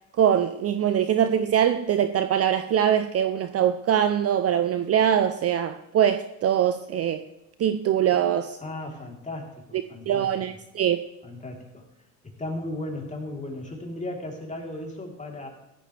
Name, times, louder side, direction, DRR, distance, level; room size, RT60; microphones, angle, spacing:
voice 1, 0.2-7.2 7.6-8.6 10.1-11.0, right 9 dB, 35° right, 10 dB, 0.7 m, -23 dB
voice 2, 8.6-10.3 11.2-11.8 12.2-15.5, left 2 dB, 15° left, 0 dB, 3.7 m, -36 dB
15.5 x 13.5 x 3.4 m, 0.90 s
supercardioid pair, 90°, 43 cm